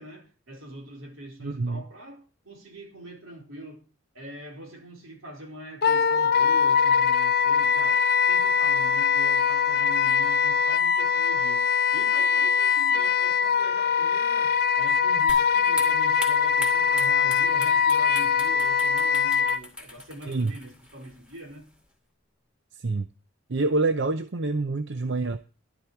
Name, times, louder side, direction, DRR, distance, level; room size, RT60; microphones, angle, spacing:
voice 1, 0.0-3.8 4.1-21.7, right 1 dB, 85° right, 4.4 m, -43 dB
voice 2, 1.4-1.8 20.3-20.5 22.8-23.1 23.5-25.4, right 3 dB, 60° right, 0.7 m, -26 dB
Wind instrument woodwind instrument, 5.8-19.6, left 6 dB, 50° left, 0.6 m, -22 dB
sound 1, 15.3-21.9, left 1 dB, 5° right, 2.5 m, -41 dB
11.5 x 11.5 x 4.5 m
head